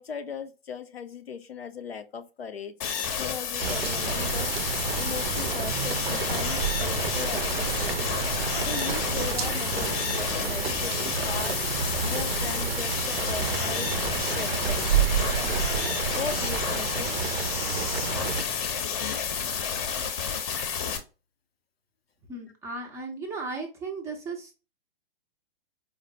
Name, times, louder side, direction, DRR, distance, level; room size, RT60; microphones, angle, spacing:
voice 1, 0.0-2.8 3.2-13.9 14.4-14.9 16.1-17.2, left 7 dB, 90° left, 0.5 m, -38 dB
sound 1, 2.8-21.0, left 7 dB, 35° left, 0.6 m, -30 dB
sound 2, 3.6-18.4, right 8 dB, 75° right, 0.5 m, -30 dB
voice 2, 22.3-24.5, right 3 dB, 10° right, 0.4 m, -36 dB
4.3 x 2.0 x 2.5 m
figure-of-eight pair, 115°, 30 cm